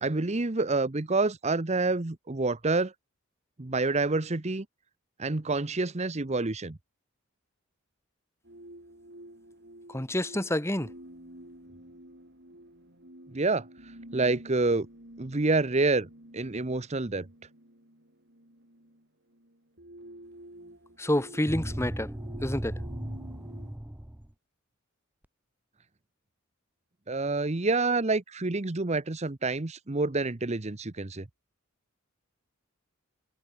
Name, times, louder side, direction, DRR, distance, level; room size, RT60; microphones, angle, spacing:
voice 1, 0.0-2.9 3.6-4.7 5.2-6.8 13.3-13.7 14.1-14.9 15.2-16.1 16.3-17.3 27.1-31.3, right 3 dB, 30° right, 0.9 m, -27 dB
sound 1, 8.4-23.7, right 1 dB, 50° right, 7.1 m, -50 dB
voice 2, 9.9-10.9 21.0-22.1 22.4-22.8, left 1 dB, 10° left, 1.9 m, -28 dB
sound 2, 21.5-24.3, right 1 dB, 10° right, 0.6 m, -36 dB
head